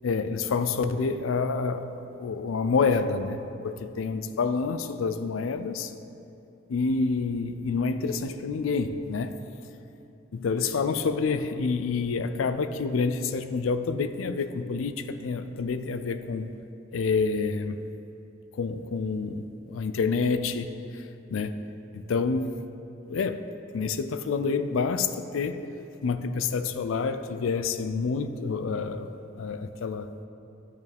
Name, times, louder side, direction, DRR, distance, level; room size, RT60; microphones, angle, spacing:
voice 1, 0.0-1.9 2.2-5.9 6.7-9.4 10.3-16.5 16.9-17.8 18.5-21.0 21.3-21.6 21.9-22.6 23.1-23.4 23.7-25.6 26.0-29.1 29.4-30.1, left 4 dB, 85° left, 0.4 m, -28 dB
10.5 x 6.7 x 3.4 m
head